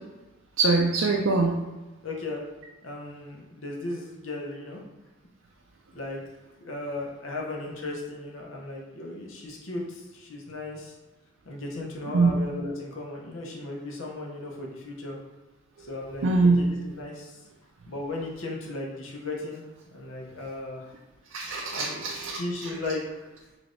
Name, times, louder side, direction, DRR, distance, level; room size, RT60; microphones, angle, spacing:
voice 1, 0.6-1.6 12.1-12.3 15.8-15.9 16.2-16.6 21.3-22.7, right 3 dB, 70° right, -1 dB, 0.4 m, -23 dB
voice 2, 2.0-2.4 2.8-4.8 5.9-6.2 6.6-10.9 11.5-15.1 15.8-17.4 17.9-19.6 19.9-20.9 21.7-22.1 22.3-23.0, left 2 dB, 75° left, -1 dB, 0.7 m, -36 dB
3.3 x 3.1 x 2.6 m, 1.1 s
head